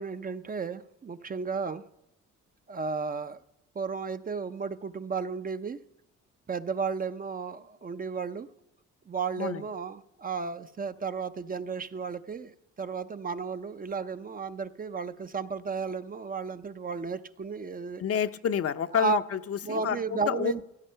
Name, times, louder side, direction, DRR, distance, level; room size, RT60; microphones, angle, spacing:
voice 1, 0.0-1.8 2.7-3.4 3.8-5.8 6.5-8.5 9.1-18.0 18.9-19.2 19.6-20.6, right 5 dB, 30° right, 0.6 m, -33 dB
voice 2, 18.0-20.5, left 8 dB, 50° left, 0.7 m, -29 dB
15.5 x 13.0 x 5.6 m
cardioid pair, 90°, 30 cm